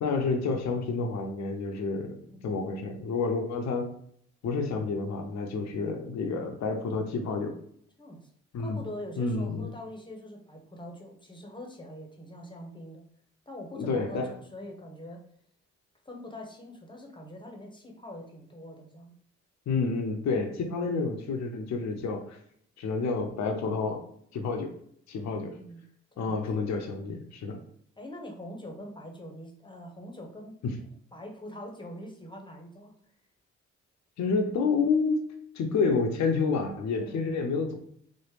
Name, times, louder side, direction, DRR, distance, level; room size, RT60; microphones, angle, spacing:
voice 1, 0.0-2.2 2.4-3.9 4.4-7.5 8.5-8.8 9.2-9.7 13.7-14.3 19.7-22.4 22.8-24.0 24.3-24.7 25.1-25.6 26.2-27.6 30.6-30.7 34.2-35.2 35.6-37.7, left 4 dB, 65° left, 3 dB, 0.6 m, -29 dB
voice 2, 8.0-8.3 8.6-13.0 13.5-15.2 16.0-19.1 20.5-20.7 25.2-25.8 26.1-26.4 26.9-27.2 28.0-30.5 31.1-32.9 36.9-37.3, left 1 dB, 15° left, 1 dB, 0.9 m, -44 dB
3.1 x 2.1 x 3.2 m, 0.66 s
supercardioid pair, 55°, 29 cm